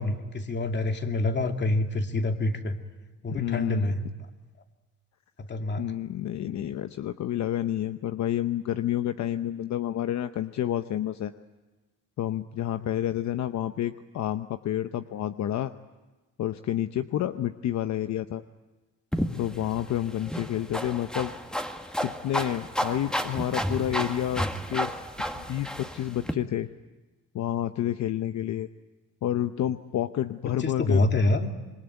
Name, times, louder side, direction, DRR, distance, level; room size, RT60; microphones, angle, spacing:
voice 1, 0.0-2.8 3.2-4.1 5.5-5.8 30.6-31.5, left 2 dB, 35° left, 5 dB, 2.4 m, -26 dB
voice 2, 3.3-3.9 5.8-11.3 12.2-15.7 16.4-18.4 19.4-21.3 22.0-24.9 25.3-26.7 27.3-28.7 29.2-31.0, left 12 dB, 65° left, 10 dB, 0.8 m, -29 dB
sound 1, 19.1-26.3, equal, 5° left, 1.9 m, -32 dB
27.0 x 22.0 x 9.1 m, 1.2 s
cardioid pair, 90°, 30 cm